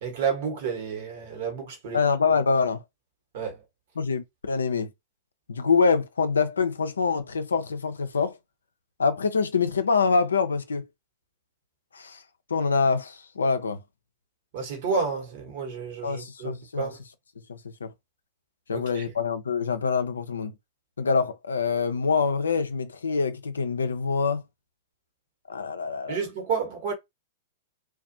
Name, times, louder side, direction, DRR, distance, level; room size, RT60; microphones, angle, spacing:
voice 1, 0.0-2.0 3.3-3.6 14.5-17.0 18.7-19.0 26.1-26.9, right 5 dB, 55° right, 1.1 m, -30 dB
voice 2, 1.9-2.8 4.0-4.9 5.5-8.4 9.0-10.9 11.9-12.2 12.5-13.8 16.0-16.9 17.5-17.9 18.7-20.5 21.0-24.4 25.5-26.2, left 5 dB, 80° left, 0.4 m, -25 dB
2.4 x 2.2 x 2.6 m
hypercardioid pair, 110°, 0 cm